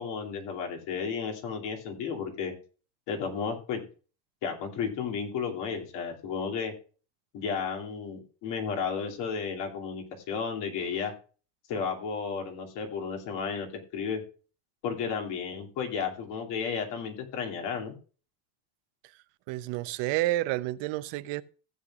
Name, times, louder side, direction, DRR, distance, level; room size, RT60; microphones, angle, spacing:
voice 1, 0.0-2.5 3.1-3.8 4.4-6.7 7.3-11.1 11.7-14.2 14.8-18.0, left 6 dB, 75° left, 2.8 m, -33 dB
voice 2, 19.5-21.4, right 17 dB, 85° right, 0.8 m, -30 dB
16.0 x 7.9 x 2.4 m
cardioid pair, 130°, 42 cm